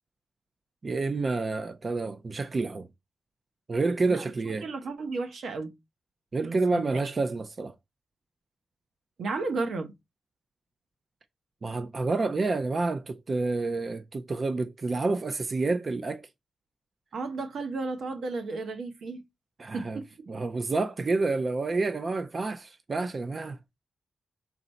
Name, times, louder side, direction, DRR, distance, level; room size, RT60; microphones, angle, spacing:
voice 1, 0.8-2.9 3.7-4.7 6.3-7.7 11.6-16.3 19.6-20.0 20.3-23.6, right 3 dB, 40° right, 0.5 m, -29 dB
voice 2, 4.6-5.7 6.4-7.1 9.2-9.9 17.1-19.2 19.7-20.3, right 3 dB, 85° right, 1.1 m, -33 dB
5.9 x 4.0 x 4.2 m
wide cardioid pair, 110°, 0 cm